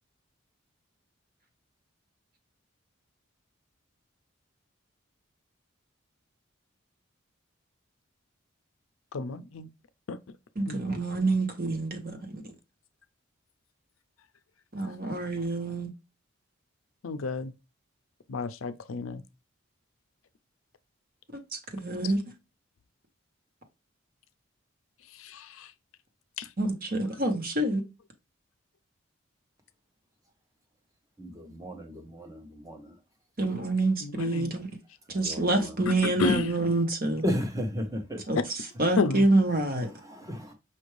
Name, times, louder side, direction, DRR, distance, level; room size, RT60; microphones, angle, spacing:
voice 1, 9.1-9.7 10.1-10.2 10.7-10.8 17.0-17.5 18.3-19.2 25.2-25.7 26.4-26.5 34.0-34.5 35.6-36.6 39.0-39.3, left 4 dB, 80° left, 0.5 m, -31 dB
voice 2, 10.6-12.4 14.7-15.9 21.7-22.2 26.6-27.8 33.4-34.7 35.1-37.2 38.3-39.9, right 2 dB, 45° right, 1.1 m, -27 dB
voice 3, 31.2-33.0 35.1-35.8 37.2-38.4 39.8-40.5, equal, 15° right, 0.9 m, -34 dB
5.6 x 2.6 x 3.2 m
head